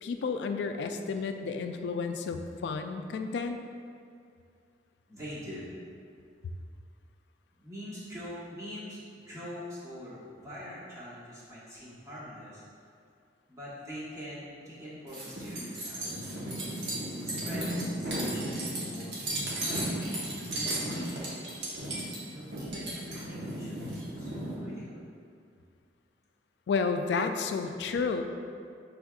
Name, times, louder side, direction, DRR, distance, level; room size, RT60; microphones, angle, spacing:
voice 1, 0.0-3.6 26.7-28.2, left 5 dB, 70° left, 7 dB, 0.3 m, -31 dB
voice 2, 5.1-5.7 7.6-12.6 13.5-16.1 17.2-20.1 20.5-21.5 22.3-25.0, equal, 20° right, -9 dB, 1.2 m, -44 dB
sound 1, 15.1-24.5, right 1 dB, 75° right, 1.1 m, -34 dB
5.9 x 3.5 x 2.3 m, 2.3 s
head